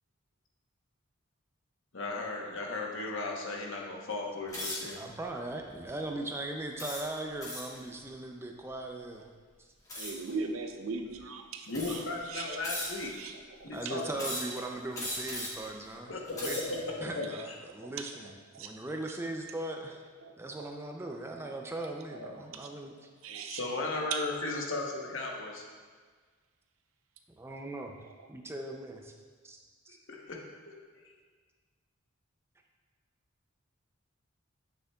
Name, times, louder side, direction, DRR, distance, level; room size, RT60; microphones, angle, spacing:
voice 1, 1.9-5.0 11.7-13.1 13.6-14.3 16.1-17.3 22.1-22.3 23.5-25.6 30.1-30.8, left 2 dB, 65° left, 0 dB, 1.0 m, -36 dB
sound 1, 4.5-4.9 5.6-5.8 6.8-7.8 9.9-10.3 11.1-11.2 11.7-12.2 12.6-13.2 14.1-14.6 14.9-15.7 16.2-16.8, left 1 dB, 15° left, 1.3 m, -38 dB
voice 2, 5.0-9.3 13.7-18.3 18.6-20.0 20.4-22.9 27.4-28.0 28.3-29.1 29.4-29.6 29.9-30.0, right 2 dB, 10° right, 2 dB, 0.4 m, -39 dB
voice 3, 10.0-12.6 13.1-13.6 13.8-13.9 14.6-14.8 16.1-16.2 17.2-17.5 18.0-18.7 20.2-20.7 21.6-21.7 22.5-22.7 23.2-24.5 24.9-25.0, right 4 dB, 75° right, 5 dB, 0.6 m, -40 dB
8.1 x 6.4 x 2.3 m, 1.5 s
head